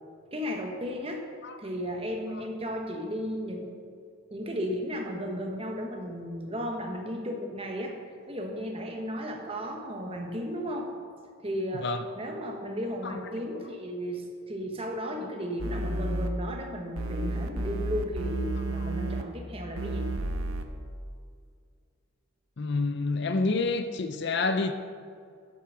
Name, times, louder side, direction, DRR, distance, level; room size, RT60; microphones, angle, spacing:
voice 1, 0.3-1.2 1.6-3.8 4.3-8.0 8.3-10.9 11.4-11.9 12.2-20.1, equal, 25° right, 2 dB, 1.2 m, -34 dB
sound 1, 15.6-16.3 17.0-19.2 19.8-20.6, right 1 dB, 85° right, 0.8 m, -31 dB
voice 2, 22.6-24.7, left 3 dB, 50° left, 9 dB, 0.5 m, -28 dB
11.0 x 7.9 x 5.8 m, 2.3 s
head